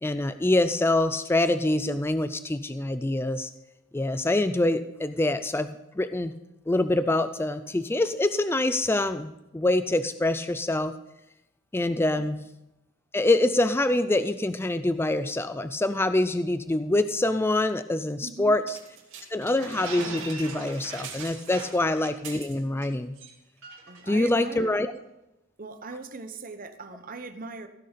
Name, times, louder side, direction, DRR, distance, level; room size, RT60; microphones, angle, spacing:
voice 1, 0.0-3.5 3.9-5.7 6.0-6.3 6.7-10.9 11.7-12.4 13.1-18.8 19.3-23.1 24.1-24.9, left 2 dB, 10° left, 11 dB, 0.3 m, -25 dB
voice 2, 18.2-18.6 21.6-21.8 23.9-24.8 25.6-27.7, right 3 dB, 40° right, 8 dB, 0.9 m, -40 dB
sound 1, 18.7-22.9 23.2-23.3 23.6-24.0, right 4 dB, 65° right, 2.9 m, -40 dB
16.0 x 6.7 x 5.2 m, 0.91 s
head